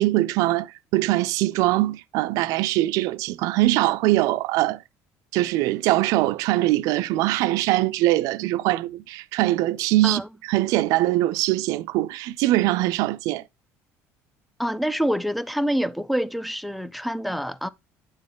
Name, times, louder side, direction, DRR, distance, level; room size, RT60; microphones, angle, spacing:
voice 1, 0.0-4.8 5.3-10.2 10.5-13.4, right 17 dB, 75° right, 0.4 m, -22 dB
voice 2, 14.6-17.7, equal, ahead, 0.3 m, -26 dB
9.3 x 3.8 x 3.8 m
cardioid pair, 135°, 6 cm